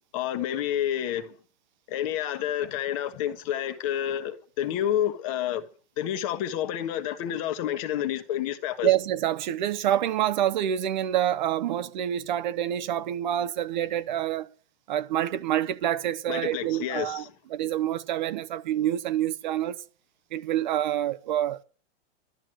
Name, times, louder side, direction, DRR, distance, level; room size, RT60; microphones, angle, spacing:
voice 1, 0.1-1.3 1.9-5.6 6.0-8.9 16.3-17.3, left 11 dB, 35° left, 1.3 m, -29 dB
voice 2, 8.8-14.5 14.9-17.2 17.5-19.8 20.3-21.6, right 11 dB, 45° right, 0.8 m, -27 dB
12.5 x 10.5 x 7.7 m
supercardioid pair, 175°, 32 cm